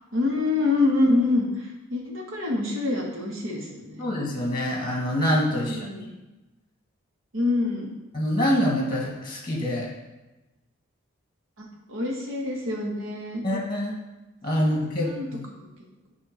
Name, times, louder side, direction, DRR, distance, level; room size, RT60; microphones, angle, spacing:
voice 1, 0.1-4.0 5.5-6.1 7.3-7.9 11.6-13.4 14.6-15.3, left 2 dB, 80° right, -1 dB, 1.4 m, -26 dB
voice 2, 4.0-5.8 8.1-9.9 13.4-14.0 14.4-15.4, equal, 20° left, -2 dB, 1.2 m, -25 dB
8.0 x 2.8 x 5.0 m, 1.0 s
head